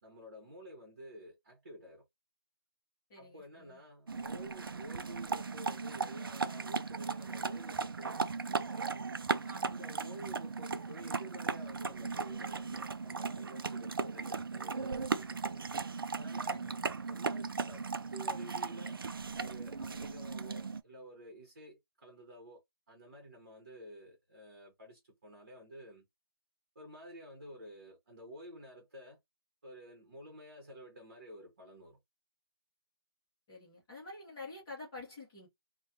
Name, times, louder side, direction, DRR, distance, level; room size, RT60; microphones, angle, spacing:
voice 1, 0.0-2.1 3.1-9.0 9.7-15.7 16.1-16.6 17.1-19.0 19.4-22.6 22.9-26.1 26.7-29.2 29.6-32.0, equal, 35° right, 1.1 m, -51 dB
voice 2, 3.1-3.8 9.4-10.2 16.5-17.0 33.5-35.5, left 2 dB, 10° left, 0.8 m, -49 dB
sound 1, 4.1-20.8, right 4 dB, 60° right, 0.4 m, -37 dB
3.2 x 2.2 x 2.7 m
hypercardioid pair, 175°, 13 cm